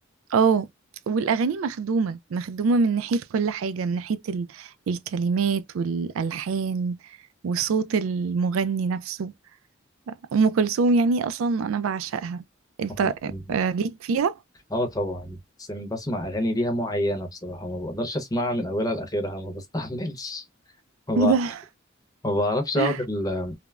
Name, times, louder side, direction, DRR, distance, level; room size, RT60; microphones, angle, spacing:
voice 1, 0.3-0.7 1.1-7.0 7.4-9.3 10.1-12.4 12.8-14.3 21.2-21.6 22.8-23.0, right 4 dB, 80° right, 0.3 m, -24 dB
voice 2, 12.9-13.4 14.7-20.4 21.1-21.4 22.2-23.5, left 1 dB, 20° left, 0.7 m, -28 dB
3.3 x 2.0 x 2.3 m
head